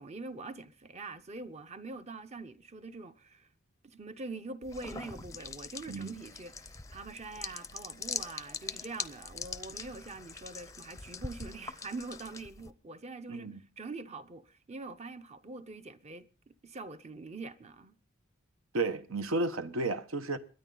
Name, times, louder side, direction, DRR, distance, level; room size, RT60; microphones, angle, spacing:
voice 1, 0.0-3.5 3.8-13.5 13.8-18.0, right 3 dB, 30° right, 0.7 m, -44 dB
sound 1, 4.6-12.7, left 5 dB, 15° left, 0.6 m, -42 dB
voice 2, 13.3-13.6 18.7-20.4, right 2 dB, 75° right, 1.0 m, -32 dB
22.0 x 9.9 x 3.9 m
head